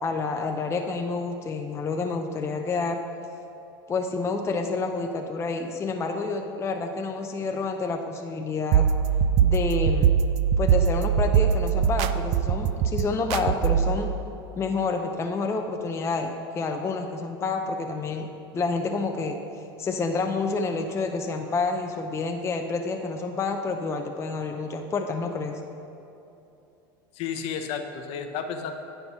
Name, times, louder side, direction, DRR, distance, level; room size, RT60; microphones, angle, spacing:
voice 1, 0.0-3.0 3.9-8.9 9.4-10.1 10.6-14.1 14.5-18.3 18.5-19.4 19.8-25.6, left 4 dB, 20° left, 4 dB, 0.5 m, -28 dB
sound 1, 8.7-14.0, right 8 dB, 55° right, 0.4 m, -22 dB
voice 2, 27.1-28.7, left 7 dB, 55° left, 6 dB, 0.8 m, -32 dB
9.5 x 4.5 x 5.5 m, 2.8 s
hypercardioid pair, 105°, 12 cm